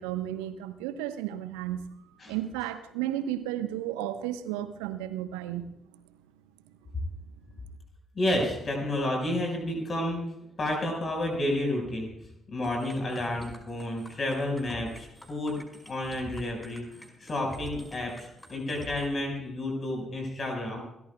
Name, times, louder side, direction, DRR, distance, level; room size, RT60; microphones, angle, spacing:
voice 1, 0.0-1.8 2.3-5.7, right 12 dB, 75° right, 10 dB, 1.1 m, -33 dB
voice 2, 8.1-10.2 10.6-12.1 12.5-15.6 15.9-20.8, left 1 dB, 40° left, 1 dB, 5.1 m, -30 dB
sound 1, 12.6-19.1, equal, 15° left, 5.2 m, -46 dB
28.5 x 13.5 x 2.3 m, 0.83 s
figure-of-eight pair, 40°, 0 cm